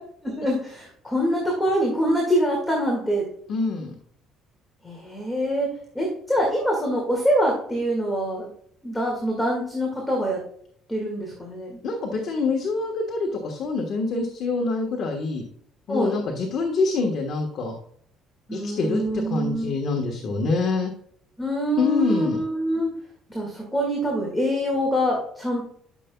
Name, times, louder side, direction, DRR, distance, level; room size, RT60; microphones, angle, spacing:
voice 1, 0.2-3.2 4.8-8.5 8.8-10.4 10.9-11.8 15.9-16.2 18.5-19.7 21.4-22.9 23.3-25.6, equal, 5° left, -2 dB, 2.0 m, -25 dB
voice 2, 3.5-4.0 11.8-15.4 15.9-17.7 18.5-20.9 21.8-22.4, left 3 dB, 45° left, 1 dB, 1.3 m, -25 dB
13.0 x 6.8 x 2.3 m, 0.65 s
cardioid pair, 165°, 0 cm